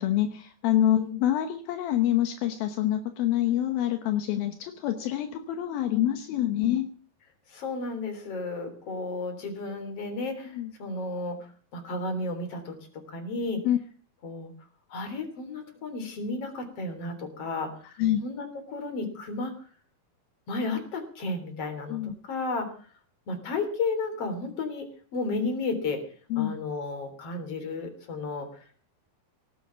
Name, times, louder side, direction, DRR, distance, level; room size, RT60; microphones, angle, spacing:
voice 1, 0.0-6.9 10.6-10.7 13.6-13.8 18.0-18.2 21.9-22.1 26.3-26.5, left 12 dB, 80° left, 7 dB, 2.9 m, -26 dB
voice 2, 7.5-11.4 11.7-13.6 14.2-14.5 14.9-19.5 20.5-22.7 23.3-26.0 26.4-28.8, left 3 dB, 40° left, 7 dB, 4.2 m, -33 dB
18.0 x 9.8 x 7.1 m, 0.42 s
omnidirectional pair, 4.3 m